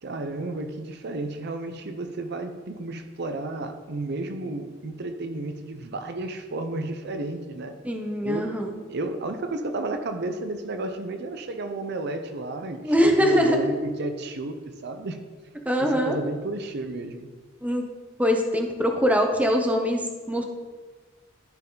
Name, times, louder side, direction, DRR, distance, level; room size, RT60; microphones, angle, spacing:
voice 1, 0.0-7.8 8.2-8.5 8.9-15.2 15.8-17.3, right 2 dB, 55° right, 7 dB, 0.6 m, -32 dB
voice 2, 7.8-8.8 12.8-13.6 15.6-16.2 17.6-17.8 18.2-20.4, equal, 5° right, 3 dB, 0.6 m, -23 dB
12.5 x 4.6 x 3.8 m, 1.5 s
head